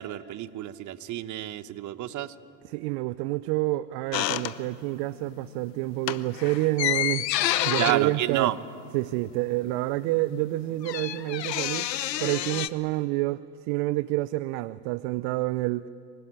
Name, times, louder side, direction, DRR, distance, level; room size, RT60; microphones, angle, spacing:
voice 1, 0.0-2.3 7.8-8.6, right 13 dB, 40° right, 14 dB, 1.1 m, -29 dB
voice 2, 2.6-7.2 7.6-8.5 8.9-11.9 12.2-15.9, right 19 dB, 55° right, 17 dB, 0.7 m, -28 dB
sound 1, 4.1-5.1 5.4-5.6 5.9-9.4 9.7-9.8 10.0-12.7, left 13 dB, 85° left, 0.9 m, -29 dB
25.0 x 18.5 x 9.9 m, 2.7 s
hypercardioid pair, 90°, 48 cm